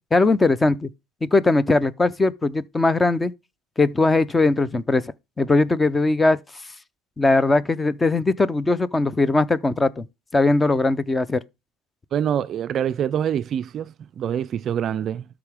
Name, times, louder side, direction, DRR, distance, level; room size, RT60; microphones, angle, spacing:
voice 1, 0.1-0.9 1.2-3.3 3.8-5.1 5.4-6.4 7.2-10.1 10.3-11.4, left 2 dB, 10° left, 0.6 m, -20 dB
voice 2, 12.1-15.3, right 9 dB, 35° right, 0.4 m, -25 dB
12.5 x 4.9 x 3.5 m
cardioid pair, 140°, 0 cm